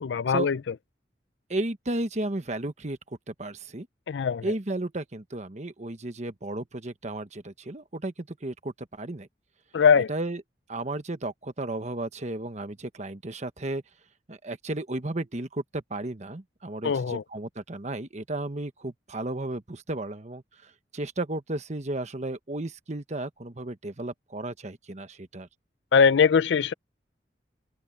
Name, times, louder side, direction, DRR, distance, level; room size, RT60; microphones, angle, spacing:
voice 1, 0.0-0.6 4.1-4.5 9.7-10.1 16.8-17.2 25.9-26.7, left 6 dB, 80° left, 0.4 m, -21 dB
voice 2, 1.5-3.0 3.3-3.9 4.4-9.3 10.1-10.4 10.7-13.8 14.3-25.5, right 2 dB, 40° right, 1.2 m, -34 dB
head